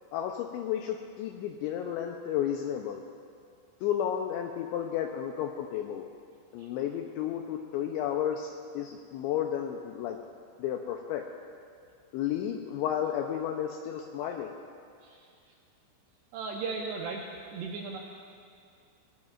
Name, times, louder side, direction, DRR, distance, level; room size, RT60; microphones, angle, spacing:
voice 1, 0.1-3.0 3.8-6.1 6.5-10.2 10.6-11.3 12.1-14.5, left 10 dB, 85° left, 3 dB, 2.6 m, -32 dB
voice 2, 16.3-17.3 17.5-18.0, right 4 dB, 80° right, 0 dB, 2.5 m, -36 dB
21.5 x 19.0 x 2.4 m, 2.3 s
omnidirectional pair, 5.8 m